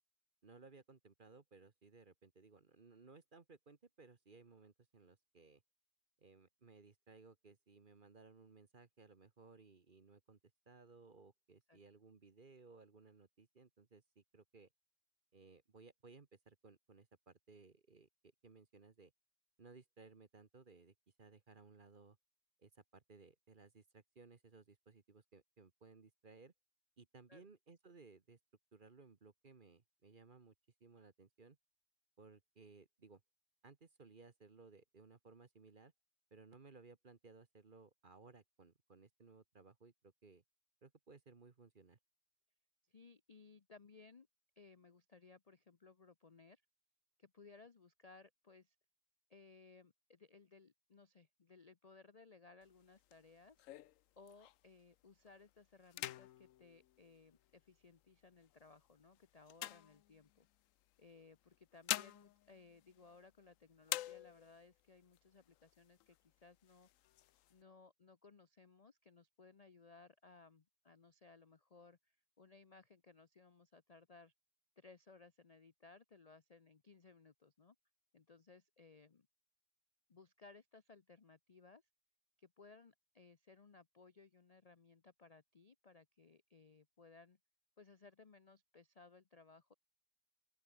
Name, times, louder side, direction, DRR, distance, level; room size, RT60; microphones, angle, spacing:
voice 1, 0.4-5.6 6.2-10.4 10.7-14.7 15.3-18.1 18.4-19.1 19.6-22.2 22.6-26.5 27.0-28.4 28.7-30.5 30.8-31.6 32.2-33.2 33.6-35.9 36.3-40.4 40.8-42.0, right 4 dB, 30° right, 1.2 m, -61 dB
voice 2, 42.9-44.3 44.6-46.6 47.2-48.8 49.3-53.6 54.2-60.5 61.0-66.9 67.5-74.3 74.8-77.8 78.1-79.3 80.1-81.8 82.4-87.4 87.8-89.7, left 4 dB, 50° left, 0.4 m, -62 dB
sound 1, 52.6-54.8 55.3-55.5 55.8-57.8 58.4-60.6 61.5-63.5 63.8-64.7 65.1-65.2 65.5-66.2 66.6-67.5, left 14 dB, 70° left, 0.7 m, -46 dB
open air
omnidirectional pair, 1.9 m